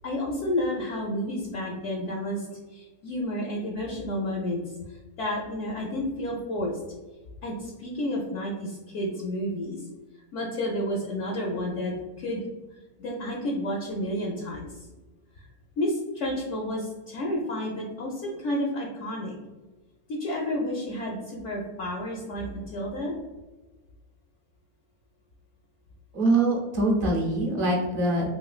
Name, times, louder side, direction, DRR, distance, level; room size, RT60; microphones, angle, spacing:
voice 1, 0.0-4.6 4.9-6.7 7.4-9.8 10.3-12.4 13.0-14.7 15.3-15.5 15.8-19.4 20.1-23.1, left 1 dB, 65° left, -1 dB, 0.8 m, -31 dB
voice 2, 26.1-28.3, right 2 dB, 45° right, -1 dB, 0.7 m, -23 dB
3.1 x 3.1 x 2.3 m, 1.2 s
omnidirectional pair, 1.5 m